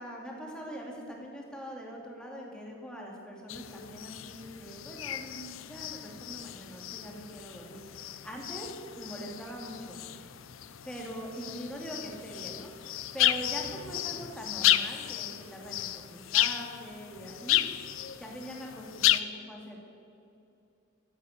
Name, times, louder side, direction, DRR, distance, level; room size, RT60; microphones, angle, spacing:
voice 1, 0.0-10.2 10.8-12.9 13.1-17.6 18.2-19.8, equal, 5° left, -1 dB, 2.6 m, -42 dB
sound 1, 3.5-19.2, left 13 dB, 90° left, 0.6 m, -32 dB
15.0 x 9.2 x 8.3 m, 2.6 s
head